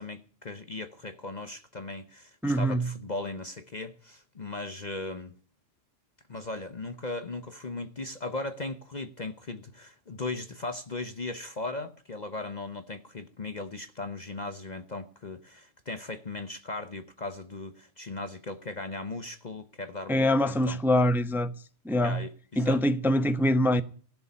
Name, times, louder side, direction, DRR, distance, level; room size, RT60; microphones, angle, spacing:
voice 1, 0.0-5.3 6.3-20.8 22.0-22.8, left 2 dB, 40° left, 1.0 m, -38 dB
voice 2, 2.4-2.9 20.1-21.5 21.8-22.2 22.6-23.8, equal, ahead, 0.6 m, -24 dB
16.0 x 6.9 x 9.7 m
omnidirectional pair, 1.3 m